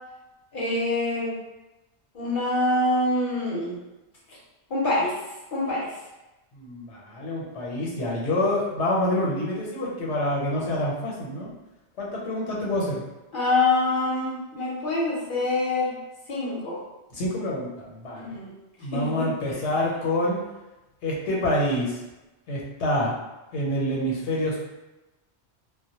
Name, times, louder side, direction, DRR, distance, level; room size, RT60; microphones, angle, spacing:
voice 1, 0.5-1.3 2.1-3.8 4.3-4.4 4.7-5.1 5.5-5.9 13.3-15.9 16.3-16.8 18.2-18.5 18.9-19.6, left 2 dB, 55° left, -7 dB, 0.8 m, -25 dB
voice 2, 6.5-11.5 12.0-13.0 17.1-18.4 18.8-20.4 21.0-22.0 22.5-23.2 23.5-24.6, left 1 dB, 85° left, -4 dB, 1.0 m, -27 dB
2.2 x 2.0 x 2.8 m, 1.0 s
omnidirectional pair, 1.1 m